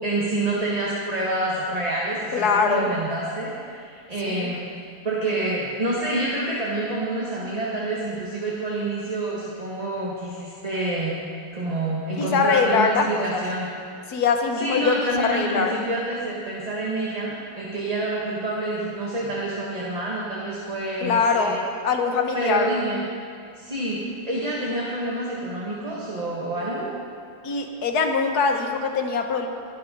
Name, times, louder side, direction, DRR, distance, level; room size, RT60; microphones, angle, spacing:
voice 1, 0.0-4.7 5.0-11.1 11.5-13.7 14.6-21.5 22.3-23.0 23.6-26.9, right 2 dB, 20° right, -5 dB, 1.5 m, -27 dB
voice 2, 2.3-2.9 4.3-4.5 12.2-13.4 14.1-14.9 15.3-15.7 21.0-21.6 21.8-22.7 27.4-29.5, left 5 dB, 60° left, 4 dB, 1.5 m, -22 dB
22.0 x 7.6 x 5.3 m, 2.3 s
omnidirectional pair, 2.1 m